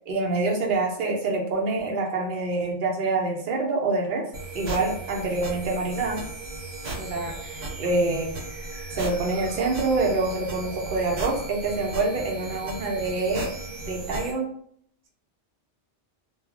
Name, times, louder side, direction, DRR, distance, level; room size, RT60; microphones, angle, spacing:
voice 1, 0.1-4.2 4.5-6.2 7.0-8.3 8.9-13.5 13.8-14.5, right 3 dB, 55° right, 0 dB, 0.7 m, -26 dB
sound 1, 4.3-14.3, right 2 dB, 70° right, 1.0 m, -36 dB
2.3 x 2.0 x 3.6 m, 0.62 s
omnidirectional pair, 1.2 m